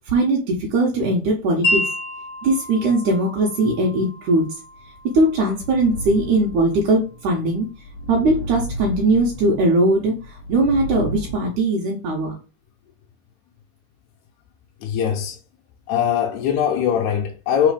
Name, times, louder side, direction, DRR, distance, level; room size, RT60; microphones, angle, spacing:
voice 1, 0.1-1.9 2.4-4.5 5.1-7.7 8.1-10.2 10.5-12.3, right 2 dB, 75° right, 2.5 m, -20 dB
Wind chime, 1.6-7.7, left 1 dB, 5° left, 2.3 m, -31 dB
sound 1, 4.9-11.3, right 1 dB, 45° left, 1.7 m, -34 dB
voice 2, 14.8-15.4 15.9-17.7, left 8 dB, 75° left, 2.1 m, -21 dB
4.9 x 4.1 x 4.9 m
omnidirectional pair, 3.7 m